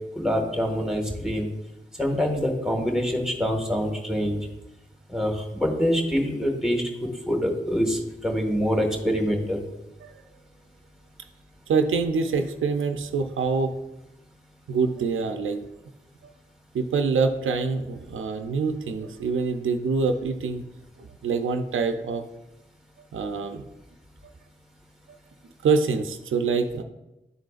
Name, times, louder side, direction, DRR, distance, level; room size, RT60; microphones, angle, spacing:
voice 1, 0.1-1.5 2.0-4.4 5.1-9.6, equal, ahead, 2 dB, 1.7 m, -25 dB
voice 2, 11.7-13.8 14.7-15.6 16.2-16.3 16.7-20.6 21.0-22.2 23.1-23.6 25.6-26.8, right 4 dB, 85° right, 7 dB, 0.5 m, -25 dB
11.0 x 3.8 x 2.4 m, 0.95 s
cardioid pair, 40°, 20 cm